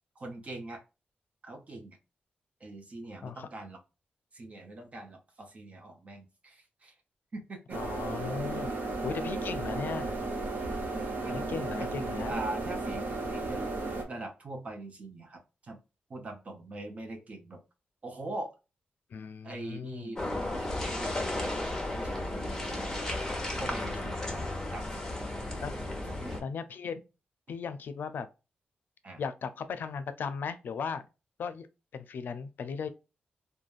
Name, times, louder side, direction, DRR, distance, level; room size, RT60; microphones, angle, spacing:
voice 1, 0.2-0.8 1.4-2.0 2.6-3.8 4.3-6.9 7.3-7.8 8.6-9.6 11.2-11.5 11.8-11.9 12.2-13.6 14.1-15.8 16.1-17.6 18.0-18.5 19.4-20.3 20.6-21.5 21.9-23.0 23.5-24.4 24.7-25.3 25.9-26.4 29.0-29.2, right 2 dB, 45° right, 0.8 m, -42 dB
voice 2, 7.7-8.7 9.0-10.2 11.3-12.3 19.1-20.2 25.6-25.8 26.4-27.0 27.5-28.3 29.2-31.0 31.4-31.7 31.9-32.9, left 6 dB, 75° left, 0.4 m, -37 dB
sound 1, 7.7-14.0, right 3 dB, 70° right, 0.8 m, -34 dB
sound 2, 20.2-26.4, left 1 dB, 15° left, 0.9 m, -34 dB
3.2 x 2.2 x 2.4 m
wide cardioid pair, 105°, 3 cm